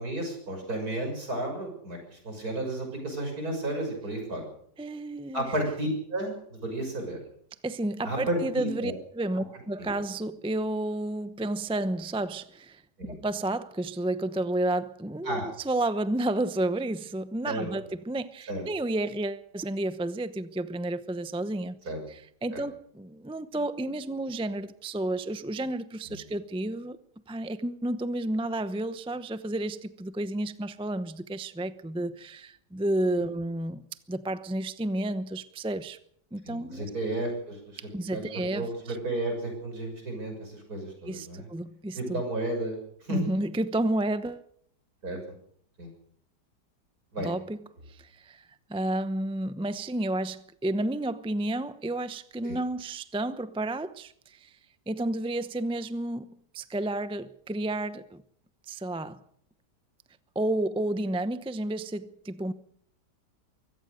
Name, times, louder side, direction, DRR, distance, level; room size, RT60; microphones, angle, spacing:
voice 1, 0.0-4.4 5.3-7.2 8.0-8.9 9.8-9.9 13.0-13.1 15.3-15.5 17.4-17.7 18.5-18.6 21.9-22.0 22.5-22.6 26.1-26.2 36.5-37.8 38.1-41.5 42.0-42.8 43.1-43.2 45.0-45.2 45.8-45.9 47.1-47.3 52.4-52.6, right 1 dB, 60° right, 7.0 m, -32 dB
voice 2, 4.8-5.5 7.6-12.8 13.1-21.8 22.1-27.0 27.3-36.0 36.3-36.9 37.9-39.0 41.0-42.2 43.1-44.5 47.2-47.6 47.9-48.4 48.7-54.5 54.9-58.2 58.7-59.2 60.3-62.5, right 1 dB, 5° right, 0.4 m, -31 dB
24.0 x 16.5 x 6.6 m
omnidirectional pair, 1.8 m